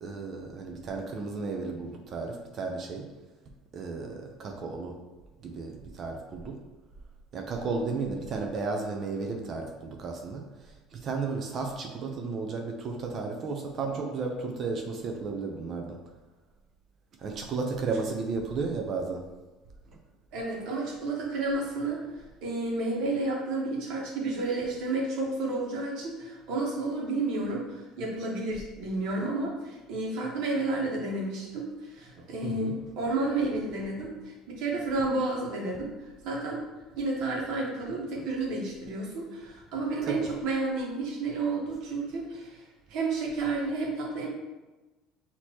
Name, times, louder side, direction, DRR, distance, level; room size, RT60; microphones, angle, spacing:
voice 1, 0.0-3.0 3.7-5.0 5.4-6.6 7.3-10.4 10.9-16.0 17.2-19.2 32.4-32.7 38.2-38.3 40.1-40.3, right 4 dB, 40° right, 2 dB, 0.6 m, -33 dB
voice 2, 20.3-22.0 22.4-35.9 36.2-36.6 37.0-42.6 42.9-44.3, right 2 dB, 65° right, -2 dB, 1.3 m, -31 dB
6.3 x 2.9 x 2.9 m, 1.1 s
cardioid pair, 130°, 0 cm